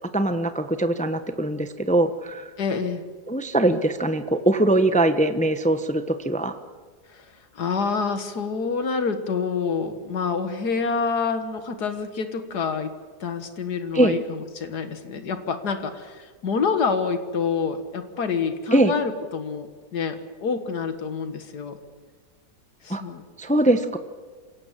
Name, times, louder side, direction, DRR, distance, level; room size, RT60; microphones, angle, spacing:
voice 1, 0.1-2.5 3.3-6.6 13.9-14.2 18.7-18.9 22.9-23.0 23.4-24.0, right 1 dB, 5° left, 10 dB, 0.7 m, -22 dB
voice 2, 2.6-3.0 7.1-13.0 13.2-21.8 22.8-23.2, left 5 dB, 75° left, 9 dB, 2.1 m, -27 dB
26.5 x 17.5 x 7.4 m, 1.5 s
omnidirectional pair, 1.7 m